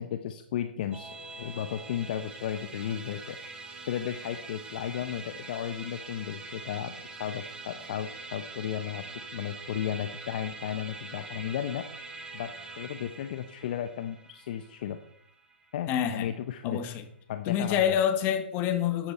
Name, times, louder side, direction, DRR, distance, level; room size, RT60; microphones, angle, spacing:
voice 1, 0.0-3.4 3.8-9.0 9.3-11.9 12.3-15.0 15.7-16.8 17.3-18.0, left 10 dB, 55° left, 8 dB, 1.0 m, -34 dB
Musical instrument, 0.9-16.4, right 3 dB, 15° right, 1.8 m, -44 dB
voice 2, 15.9-16.3 16.6-17.0 17.5-19.1, left 9 dB, 35° left, 7 dB, 1.9 m, -27 dB
13.5 x 9.5 x 4.4 m, 0.69 s
hypercardioid pair, 120°, 6 cm